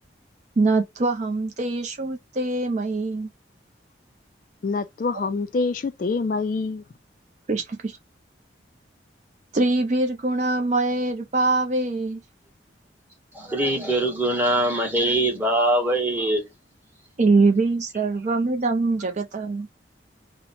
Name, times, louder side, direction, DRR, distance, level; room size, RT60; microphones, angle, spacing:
voice 1, 0.6-3.3 5.1-5.2 7.5-8.0 9.5-12.2 17.2-19.7, right 3 dB, 40° right, 0.4 m, -23 dB
voice 2, 4.6-6.8, left 4 dB, 45° left, 0.3 m, -26 dB
voice 3, 13.3-16.5, right 1 dB, 10° right, 1.1 m, -22 dB
2.9 x 2.1 x 4.0 m
head